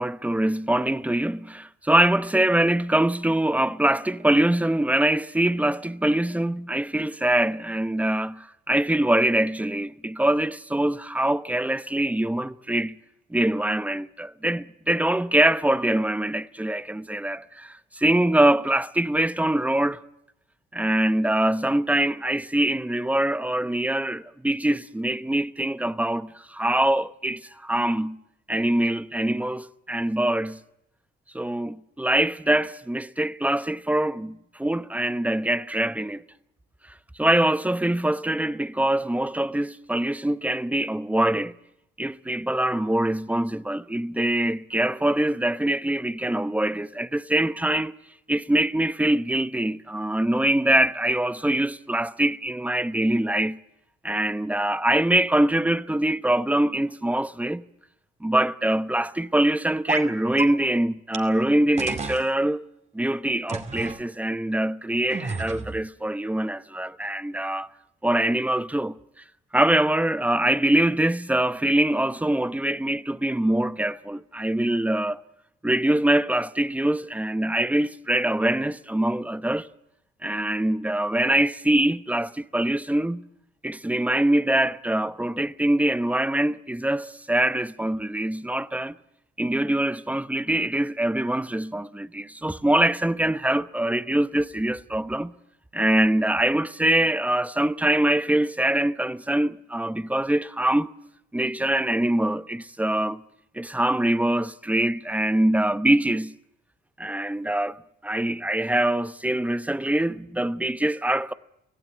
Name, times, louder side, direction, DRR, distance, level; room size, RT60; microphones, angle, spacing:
voice 1, 0.0-13.0 13.3-20.0 20.7-28.2 28.5-30.6 31.3-36.2 37.2-41.5 42.0-47.9 48.3-53.6 54.0-57.6 58.2-62.7 62.9-67.7 68.0-69.0 69.5-75.2 75.6-79.7 80.2-83.2 83.6-88.9 89.4-95.3 95.7-100.9 101.3-103.2 103.5-106.3 107.0-107.8 108.0-111.3, right 1 dB, 5° right, 0.9 m, -24 dB
sound 1, 59.9-60.1 60.4-60.5 61.1-61.2 61.8-62.3 63.5-64.0 65.1-65.8, right 3 dB, 35° right, 2.5 m, -31 dB
25.0 x 16.5 x 9.1 m
cardioid pair, 90°, 20 cm